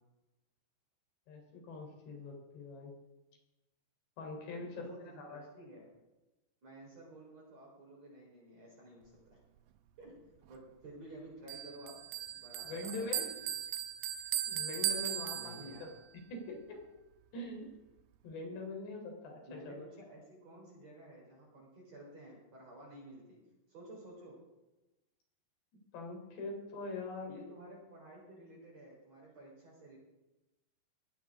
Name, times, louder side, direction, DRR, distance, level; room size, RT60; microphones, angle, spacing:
voice 1, 1.3-2.9 4.2-5.5 12.7-13.3 14.5-15.9 16.3-16.8 17.3-17.7 18.2-19.4 19.7-19.9 25.9-27.3, left 2 dB, 70° left, 1 dB, 5.9 m, -43 dB
voice 2, 4.6-5.9 6.6-9.4 10.0-12.0 12.3-13.5 15.3-15.9 19.5-23.4 23.7-24.4 27.3-30.0, right 1 dB, 35° right, -3 dB, 5.0 m, -53 dB
Bell, 11.5-16.0, right 11 dB, 80° right, 3.0 m, -38 dB
20.0 x 16.0 x 3.7 m, 1.0 s
omnidirectional pair, 5.1 m